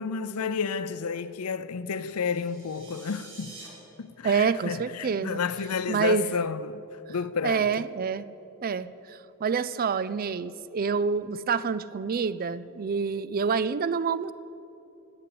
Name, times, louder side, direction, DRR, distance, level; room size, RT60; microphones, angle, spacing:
voice 1, 0.0-3.5 4.0-7.9, left 5 dB, 85° left, 0.6 m, -31 dB
sound 1, 2.1-3.7, right 3 dB, 60° right, 3.5 m, -47 dB
voice 2, 4.2-5.4 5.9-6.3 7.4-8.2 8.6-14.3, right 5 dB, 40° right, 0.4 m, -27 dB
16.0 x 10.0 x 7.6 m
head